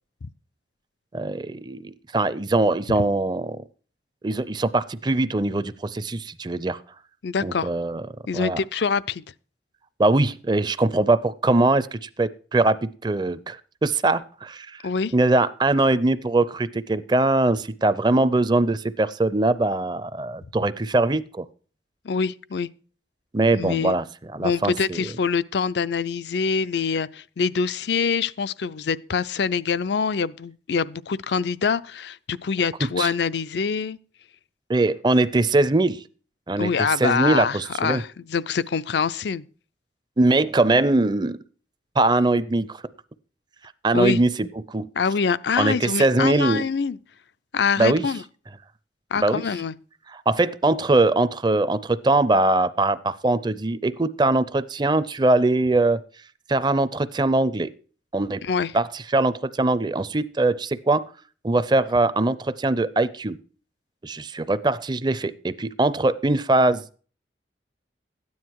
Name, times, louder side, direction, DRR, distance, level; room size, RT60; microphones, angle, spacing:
voice 1, 1.1-3.6 4.2-6.8 7.4-8.1 8.3-8.6 10.0-14.8 15.1-21.5 23.3-24.0 24.3-25.1 33.0-33.1 34.7-36.0 36.5-38.0 40.2-41.4 42.0-42.8 43.8-44.9 45.6-46.7 47.8-48.1 49.2-49.4 50.1-56.0 56.5-57.7 58.1-58.5 58.7-61.0 61.4-63.4 64.0-66.9, right 2 dB, 25° right, 0.5 m, -22 dB
voice 2, 7.2-7.7 8.3-9.2 14.8-15.1 22.0-22.7 23.5-23.9 24.4-34.0 36.6-39.4 43.9-44.2 45.0-47.0 47.5-48.2 49.1-49.7 58.4-58.7, left 5 dB, 70° left, 0.5 m, -25 dB
13.0 x 9.6 x 4.7 m
head